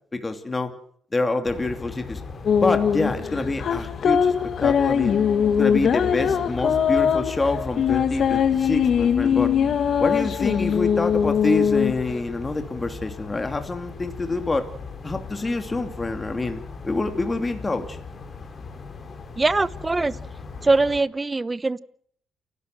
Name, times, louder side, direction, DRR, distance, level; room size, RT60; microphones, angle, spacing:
voice 1, 0.1-0.7 1.1-2.2 2.6-4.3 4.6-5.2 5.6-9.5 10.0-14.7 15.0-18.0, left 2 dB, 25° left, 6 dB, 2.8 m, -26 dB
sound 1, 1.5-21.0, left 4 dB, 40° left, 4.2 m, -38 dB
sound 2, 2.5-12.2, left 7 dB, 60° left, 1.5 m, -21 dB
voice 2, 19.4-20.2 20.6-21.8, right 3 dB, 20° right, 16 dB, 1.0 m, -22 dB
29.0 x 12.0 x 7.8 m, 0.62 s
cardioid pair, 90°, 0 cm